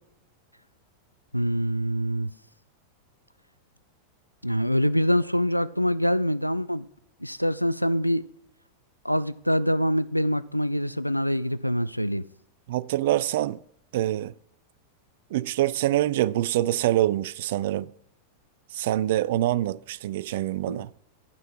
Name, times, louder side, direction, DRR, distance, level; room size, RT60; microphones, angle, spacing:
voice 1, 1.3-2.3 4.4-6.9 7.2-8.2 9.0-12.2 20.7-20.8, equal, 90° left, 0.3 m, -25 dB
voice 2, 12.7-13.6 13.9-14.3 15.3-17.9 18.7-20.9, right 14 dB, 55° right, 0.3 m, -25 dB
12.5 x 5.5 x 4.6 m
figure-of-eight pair, 90°, 0 cm